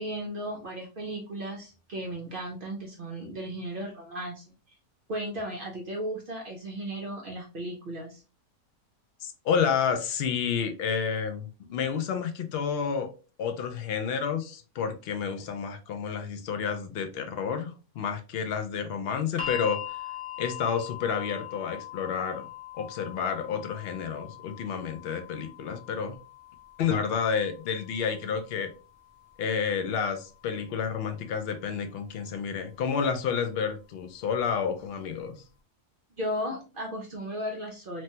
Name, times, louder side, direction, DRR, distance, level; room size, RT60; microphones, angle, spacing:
voice 1, 0.0-4.4 5.1-8.2 36.2-38.0, equal, 60° right, 0.6 m, -35 dB
voice 2, 9.2-13.1 13.4-19.8 20.4-22.5 22.7-26.2 26.8-28.7 29.4-35.4, left 6 dB, 70° left, 0.6 m, -30 dB
sound 1, 19.4-31.5 32.5-32.6, left 11 dB, 30° left, 0.7 m, -43 dB
3.1 x 2.2 x 2.8 m
omnidirectional pair, 1.5 m